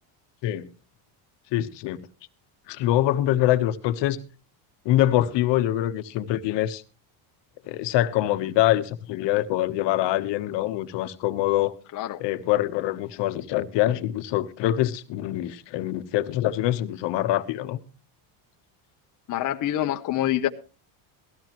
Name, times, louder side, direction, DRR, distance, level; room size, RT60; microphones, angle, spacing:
voice 1, 1.5-2.0 2.7-4.2 4.8-6.8 7.7-11.7 12.2-17.8, left 14 dB, 60° left, 1.2 m, -24 dB
voice 2, 19.3-20.5, left 12 dB, 40° left, 0.9 m, -26 dB
18.5 x 14.0 x 3.0 m
cardioid pair, 145°, 48 cm